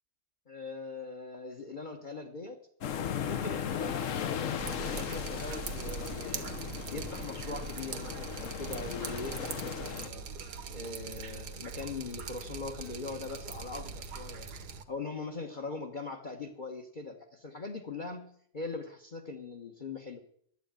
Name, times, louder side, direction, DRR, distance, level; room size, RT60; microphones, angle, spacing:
voice 1, 0.5-2.6 3.2-6.5 6.9-10.2 10.7-14.5 14.9-20.2, left 3 dB, 30° left, 5 dB, 1.1 m, -41 dB
sound 1, 2.8-10.1, left 8 dB, 55° left, 1.1 m, -37 dB
Drip, 4.6-14.8, right 5 dB, 75° right, 1.6 m, -41 dB
11.0 x 8.1 x 8.9 m, 0.65 s
omnidirectional pair, 1.8 m